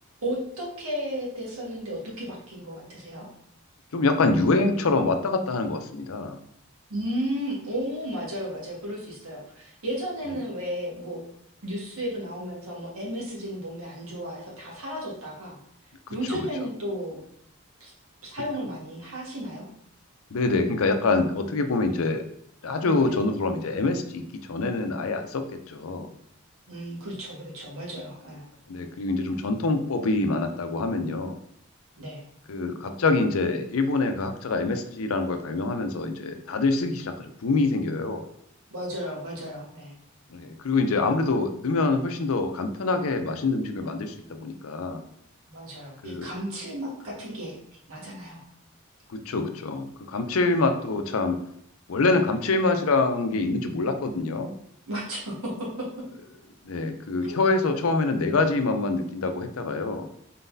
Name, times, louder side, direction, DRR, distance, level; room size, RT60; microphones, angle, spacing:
voice 1, 0.2-3.3 6.9-11.2 11.6-15.6 16.1-17.2 17.8-17.9 18.2-19.7 23.0-23.1 26.7-28.4 32.0-32.2 38.7-39.9 45.5-47.6 47.9-48.4 50.6-50.7 54.9-55.9 57.2-57.4, equal, 90° right, -4 dB, 1.6 m, -34 dB
voice 2, 3.9-6.4 16.3-16.5 20.3-22.2 22.6-24.2 24.5-26.1 28.7-31.4 32.5-38.3 40.3-45.0 46.0-46.3 49.1-51.4 51.9-54.5 56.6-60.1, left 3 dB, 80° left, 7 dB, 0.5 m, -25 dB
4.0 x 3.9 x 2.7 m, 0.71 s
head